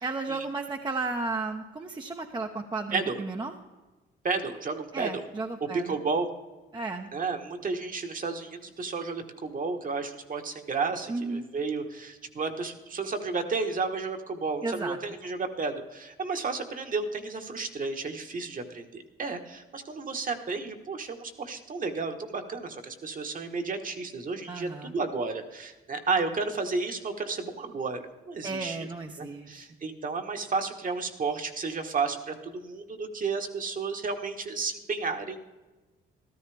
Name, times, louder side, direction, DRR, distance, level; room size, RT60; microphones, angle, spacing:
voice 1, 0.0-3.5 4.9-6.0 6.7-7.1 11.1-11.5 14.6-15.0 24.5-24.9 28.4-29.7, right 3 dB, 20° right, 3 dB, 0.9 m, -34 dB
voice 2, 4.2-5.2 5.9-6.3 7.1-28.9 29.2-35.4, right 4 dB, 45° right, 5 dB, 1.5 m, -32 dB
14.0 x 13.0 x 3.5 m, 1.2 s
cardioid pair, 90°, 20 cm